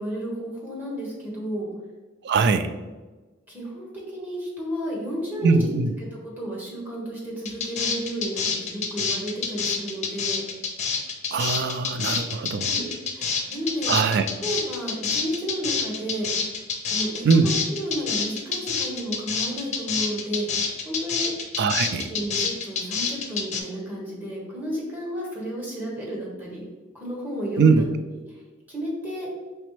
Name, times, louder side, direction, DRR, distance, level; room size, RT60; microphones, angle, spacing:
voice 1, 0.0-1.7 3.5-5.7 6.4-10.4 12.6-13.9 14.4-16.5 16.9-21.3 21.8-26.6 26.9-27.8 28.3-28.4 28.7-29.3, equal, 10° right, -5 dB, 1.2 m, -32 dB
voice 2, 2.2-2.7 5.4-5.9 11.3-12.7 13.9-14.3 17.2-17.5 21.6-22.1 27.6-27.8, right 4 dB, 60° right, 10 dB, 0.3 m, -21 dB
sound 1, 7.5-23.6, left 5 dB, 40° left, 0.5 m, -27 dB
4.1 x 3.3 x 3.2 m, 1.2 s
head